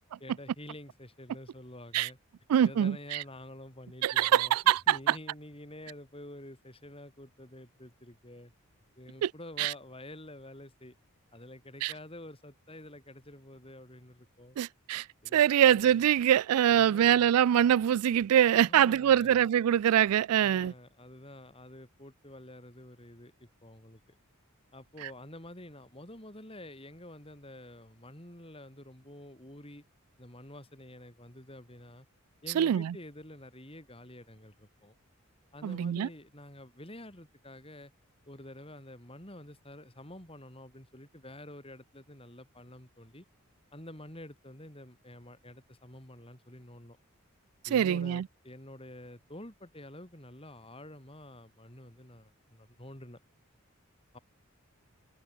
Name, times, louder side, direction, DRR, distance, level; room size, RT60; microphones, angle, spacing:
voice 1, 0.2-2.2 2.6-8.5 9.0-10.9 11.3-14.6 15.2-16.0 16.7-17.3 18.6-19.5 20.4-24.2 24.7-29.8 30.2-32.1 32.4-34.9 35.5-37.9 38.3-43.3 43.7-47.0 47.7-53.2 54.1-54.2, left 1 dB, 25° left, 7.8 m, -48 dB
voice 2, 2.5-3.2 4.0-5.1 9.2-9.3 9.6-9.7 11.8-11.9 14.6-15.1 15.3-20.7 32.6-32.9 35.6-36.1 47.7-48.2, right 10 dB, 85° right, 0.3 m, -24 dB
head